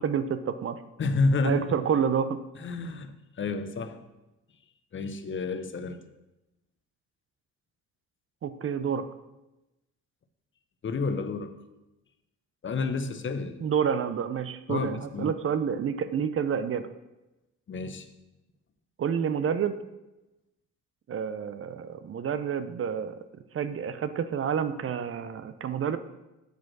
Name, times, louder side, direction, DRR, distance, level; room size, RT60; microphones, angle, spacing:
voice 1, 0.0-0.8 1.4-2.4 8.4-9.1 13.6-16.9 19.0-19.8 21.1-23.2 23.5-26.0, right 7 dB, 45° right, 0.6 m, -29 dB
voice 2, 1.0-1.8 2.6-4.0 4.9-6.0 10.8-11.5 12.6-13.6 14.7-15.3 17.7-18.1, left 3 dB, 40° left, 0.8 m, -30 dB
8.1 x 5.0 x 6.0 m
cardioid pair, 90°, 30 cm